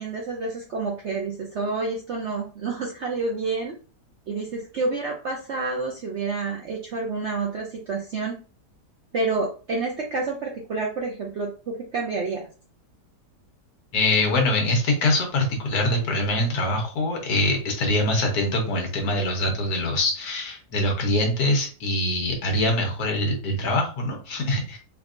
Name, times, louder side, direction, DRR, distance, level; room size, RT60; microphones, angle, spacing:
voice 1, 0.0-3.7 4.3-8.4 9.1-12.5, right 3 dB, 65° right, 0 dB, 0.7 m, -29 dB
voice 2, 13.9-24.8, left 1 dB, 65° left, 2 dB, 1.4 m, -24 dB
4.6 x 2.7 x 2.5 m, 0.37 s
omnidirectional pair, 1.8 m